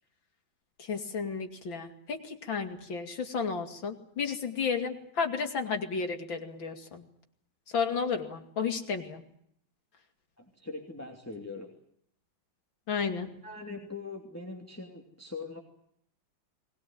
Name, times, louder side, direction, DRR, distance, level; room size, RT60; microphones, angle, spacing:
voice 1, 0.8-7.0 7.7-9.2 12.9-13.3, left 5 dB, 65° left, 5 dB, 3.3 m, -32 dB
voice 2, 10.4-11.7 13.4-15.6, left 3 dB, 5° left, 2 dB, 2.8 m, -41 dB
22.0 x 20.0 x 9.2 m, 0.70 s
omnidirectional pair, 2.2 m